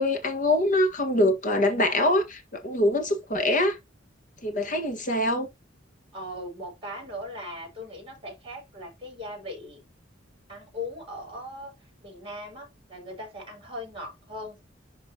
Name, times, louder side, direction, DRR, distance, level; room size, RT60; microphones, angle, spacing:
voice 1, 0.0-3.8 4.4-5.5, left 1 dB, 45° left, 1.6 m, -24 dB
voice 2, 6.1-9.8 10.5-11.7 12.0-14.6, left 1 dB, 30° right, 5.2 m, -39 dB
11.0 x 3.7 x 2.9 m
head